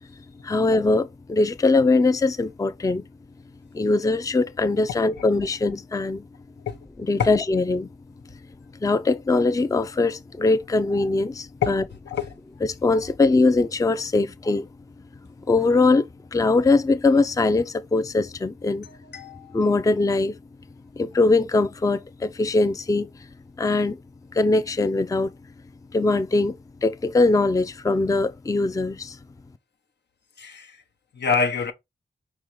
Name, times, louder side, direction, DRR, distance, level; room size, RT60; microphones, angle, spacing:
voice 1, 0.4-3.0 3.7-6.3 7.0-7.9 8.8-11.8 12.8-14.7 15.5-16.1 16.3-18.9 19.5-20.4 21.0-23.1 23.6-24.0 24.3-25.3 25.9-26.6 26.8-29.2, left 3 dB, 20° left, 0.4 m, -21 dB
voice 2, 18.9-19.6 30.4-30.8 31.1-31.7, left 6 dB, 75° left, 0.8 m, -26 dB
4.4 x 3.6 x 3.1 m
cardioid pair, 45°, 18 cm